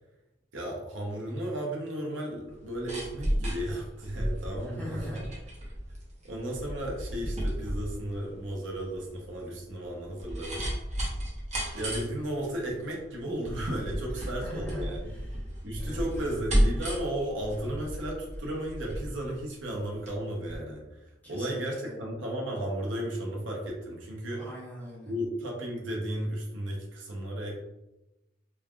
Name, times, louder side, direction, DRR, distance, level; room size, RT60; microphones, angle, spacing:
voice 1, 0.5-5.1 6.2-10.7 11.7-15.1 15.6-24.4 25.0-27.6, right 1 dB, 85° right, -1 dB, 0.7 m, -34 dB
sound 1, 2.5-20.2 20.5-20.6, equal, 35° right, 0.8 m, -33 dB
voice 2, 4.8-5.5 14.2-15.5 15.8-16.4 21.2-22.0 24.3-25.1, equal, 10° left, -6 dB, 0.8 m, -42 dB
3.2 x 2.2 x 2.3 m, 0.96 s
head